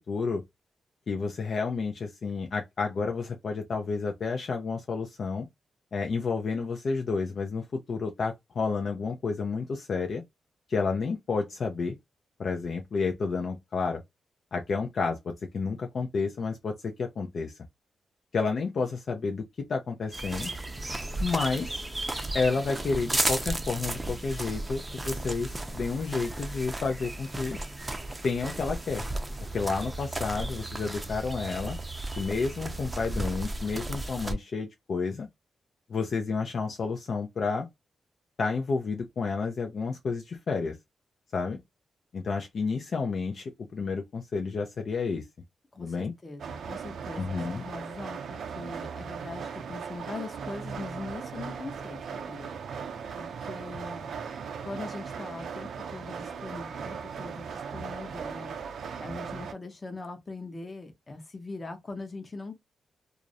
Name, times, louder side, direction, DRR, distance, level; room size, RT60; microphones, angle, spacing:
voice 1, 0.1-0.4 1.1-5.5 5.9-10.2 10.7-12.0 12.4-14.0 14.5-17.6 18.3-19.4 19.7-20.5 21.2-21.8 22.3-27.6 28.2-29.0 29.5-31.8 32.2-35.3 35.9-37.7 38.4-40.8 41.3-41.6 42.1-45.2 45.8-46.1 47.2-47.6, left 4 dB, 60° left, 0.4 m, -30 dB
sound 1, 20.1-34.3, right 2 dB, 20° right, 0.5 m, -34 dB
voice 2, 45.7-52.5 53.1-54.1 54.6-58.5 59.0-62.5, left 3 dB, 30° left, 0.7 m, -41 dB
sound 2, 46.4-59.5, right 6 dB, 75° right, 0.5 m, -38 dB
2.4 x 2.0 x 2.6 m
cardioid pair, 100°, 0 cm